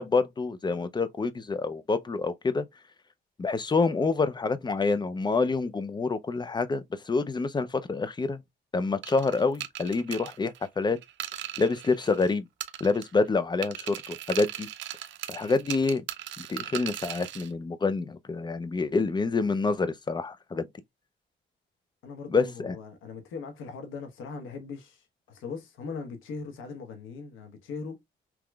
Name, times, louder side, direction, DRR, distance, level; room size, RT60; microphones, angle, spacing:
voice 1, 0.0-2.6 3.4-8.4 8.7-11.0 11.6-12.5 12.8-14.7 15.3-16.0 16.4-20.7 22.3-22.8, left 4 dB, 20° left, 0.4 m, -27 dB
sound 1, 9.0-12.3 12.6-13.3 13.6-17.5, right 12 dB, 70° right, 0.5 m, -38 dB
voice 2, 22.0-28.0, left 4 dB, 85° left, 1.2 m, -40 dB
3.6 x 2.9 x 2.2 m
cardioid pair, 90°, 20 cm